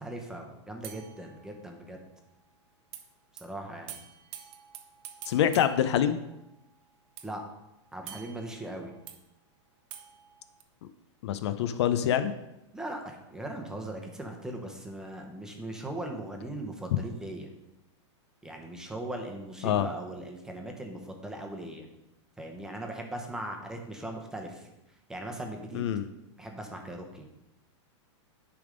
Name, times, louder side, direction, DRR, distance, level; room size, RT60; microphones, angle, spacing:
voice 1, 0.0-2.0 3.4-4.0 7.2-7.5 7.9-8.9 12.7-17.5 18.4-21.9 22.4-24.7 25.1-25.8 26.4-27.3, right 1 dB, 5° right, 2 dB, 0.9 m, -39 dB
sound 1, 0.8-2.0 2.9-3.0 3.4-3.5 3.9-6.6 7.2-9.2 9.9-10.6, right 10 dB, 35° right, 0.8 m, -48 dB
voice 2, 5.3-6.2 11.2-12.3 19.6-19.9 25.7-26.1, left 10 dB, 65° left, 11 dB, 0.6 m, -25 dB
9.8 x 3.5 x 5.1 m, 0.91 s
supercardioid pair, 150°, 16 cm